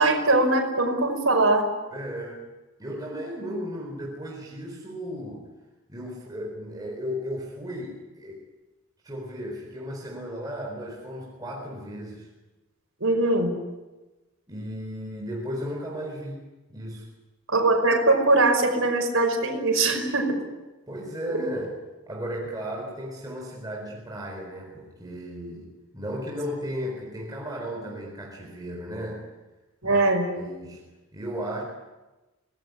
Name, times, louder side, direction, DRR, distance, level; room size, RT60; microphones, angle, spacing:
voice 1, 0.0-1.7 13.0-13.5 17.5-20.4 21.3-21.5 29.8-30.3, right 2 dB, 60° right, 3 dB, 5.4 m, -21 dB
voice 2, 1.9-2.4 2.8-5.5 5.9-8.4 9.0-12.3 14.5-16.4 16.7-17.1 20.9-21.8 22.1-29.2 29.8-31.6, equal, 15° right, -1 dB, 4.1 m, -35 dB
25.5 x 20.0 x 9.6 m, 1.1 s
head